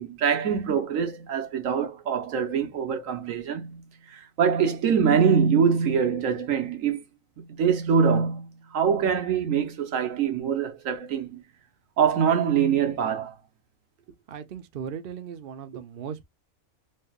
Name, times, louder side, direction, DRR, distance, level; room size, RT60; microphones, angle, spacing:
voice 1, 0.0-3.8 4.1-7.0 7.4-11.4 12.0-13.4, right 7 dB, 75° right, 1.2 m, -24 dB
voice 2, 14.3-16.2, right 7 dB, 55° right, 0.7 m, -37 dB
3.2 x 3.2 x 2.3 m
omnidirectional pair, 1.4 m